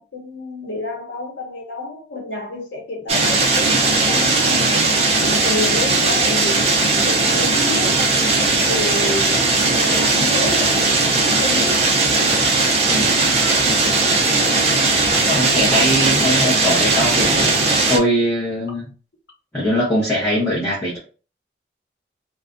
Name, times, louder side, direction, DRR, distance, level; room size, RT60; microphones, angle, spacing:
voice 1, 0.0-3.7 4.0-8.1 8.4-9.4 9.7-11.8, left 2 dB, 85° left, 0.8 m, -29 dB
sound 1, 3.1-18.0, right 3 dB, 35° right, 0.4 m, -18 dB
voice 2, 12.9-13.2 15.2-18.9 19.5-21.0, equal, 10° left, 0.9 m, -21 dB
2.4 x 2.1 x 2.5 m
head